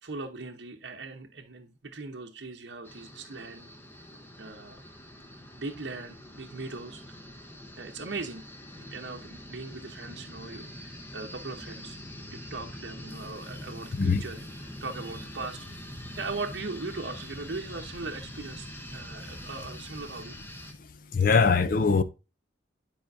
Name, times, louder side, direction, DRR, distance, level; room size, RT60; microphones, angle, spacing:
voice 1, 0.0-3.7 4.4-4.8 5.6-7.3 7.8-8.5 8.8-12.0 12.3-15.9 16.1-20.4, right 3 dB, 60° right, 0.8 m, -39 dB
sound 1, 2.8-20.7, left 1 dB, 10° left, 0.9 m, -44 dB
voice 2, 20.8-22.0, left 5 dB, 45° left, 0.5 m, -23 dB
10.5 x 5.0 x 2.6 m
head